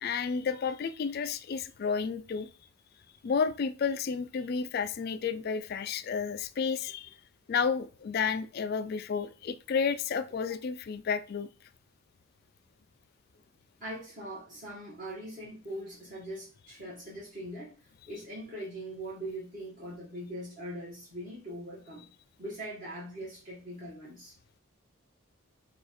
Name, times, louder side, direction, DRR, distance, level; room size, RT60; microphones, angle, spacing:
voice 1, 0.0-2.5 3.2-7.1 7.5-11.5, left 6 dB, 50° left, 0.3 m, -31 dB
voice 2, 13.8-17.8 18.1-22.0 22.4-24.3, right 1 dB, 40° right, 1.5 m, -41 dB
4.6 x 2.4 x 4.2 m
head